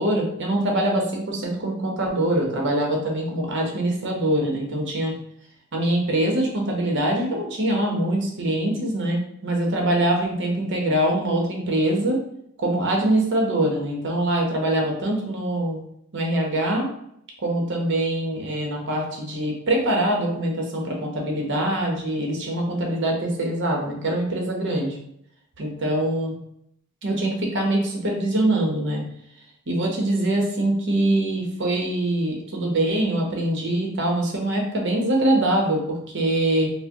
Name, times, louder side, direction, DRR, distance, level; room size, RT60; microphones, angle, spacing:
voice 1, 0.0-5.1 5.7-12.2 12.6-15.8 16.1-16.9 17.4-25.0 25.6-26.3 27.0-29.0 29.7-36.7, right 1 dB, 55° right, 0 dB, 0.9 m, -23 dB
4.6 x 2.1 x 2.9 m, 0.73 s
head